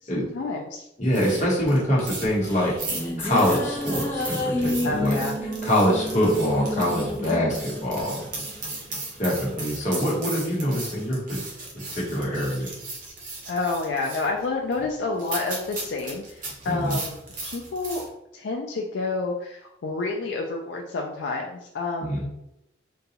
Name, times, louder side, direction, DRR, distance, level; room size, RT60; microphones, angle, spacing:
voice 1, 0.0-0.9 4.8-5.4 13.5-17.1 17.4-18.0 18.3-22.2, left 3 dB, 70° left, 0 dB, 0.4 m, -29 dB
voice 2, 1.0-2.7 3.2-5.2 5.6-8.3 9.2-11.4 11.7-12.7 16.7-17.0 22.0-22.2, equal, 40° left, -4 dB, 1.0 m, -24 dB
sound 1, 1.0-18.1, right 2 dB, 45° right, 0.9 m, -37 dB
sound 2, 2.4-8.8, left 1 dB, 15° left, 0.5 m, -30 dB
3.8 x 2.3 x 2.8 m, 0.84 s
head